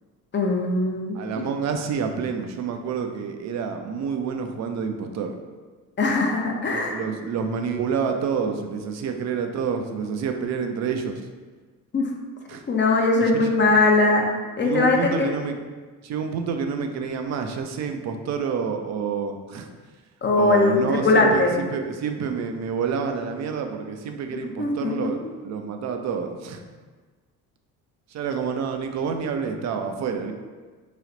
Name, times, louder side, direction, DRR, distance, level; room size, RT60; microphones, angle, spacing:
voice 1, 0.3-1.4 6.0-7.0 11.9-12.1 12.7-14.3 14.6-15.3 20.2-21.5 24.3-25.1, left 3 dB, 25° left, 1 dB, 0.6 m, -21 dB
voice 2, 1.1-5.3 6.7-11.2 12.5-12.6 13.2-13.5 14.6-15.6 16.0-19.7 20.3-26.6 28.1-30.3, right 6 dB, 40° right, 5 dB, 0.5 m, -28 dB
3.3 x 2.3 x 3.8 m, 1.4 s
hypercardioid pair, 55°, 46 cm